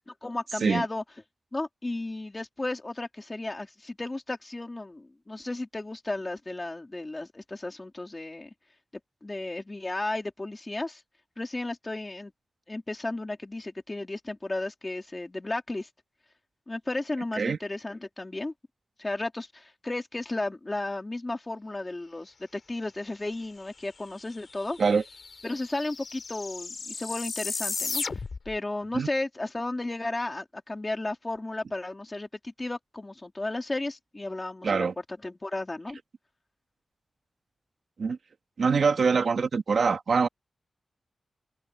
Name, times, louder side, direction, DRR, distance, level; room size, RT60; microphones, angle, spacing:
voice 1, 0.2-1.0 1.5-8.5 9.2-11.0 11.4-12.3 12.7-15.9 16.7-18.5 19.0-24.8 25.4-28.0 28.4-34.9 35.2-36.0, left 2 dB, 20° left, 3.2 m, -34 dB
sound 1, 24.1-24.2 24.3-28.6, left 4 dB, 45° left, 4.0 m, -35 dB
voice 2, 34.6-34.9 38.0-38.2 38.6-40.3, right 5 dB, 60° right, 2.5 m, -24 dB
wide cardioid pair, 180°, 0 cm